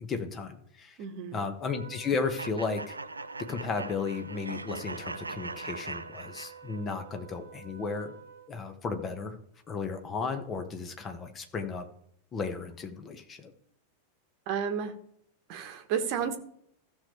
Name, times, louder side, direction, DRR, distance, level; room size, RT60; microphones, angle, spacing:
voice 1, 0.0-1.0 1.3-3.0 3.5-8.1 8.5-9.4 9.7-11.8 12.3-13.5, left 4 dB, 25° left, 6 dB, 1.4 m, -34 dB
voice 2, 1.0-1.4 14.5-15.0 15.5-16.4, right 7 dB, 45° right, 8 dB, 1.2 m, -32 dB
Trumpet, 1.6-8.5, right 7 dB, 65° right, 0.9 m, -50 dB
sound 1, 2.4-7.0, right 3 dB, 80° right, 0.4 m, -41 dB
15.0 x 6.7 x 3.3 m, 0.70 s
figure-of-eight pair, 90°, 0 cm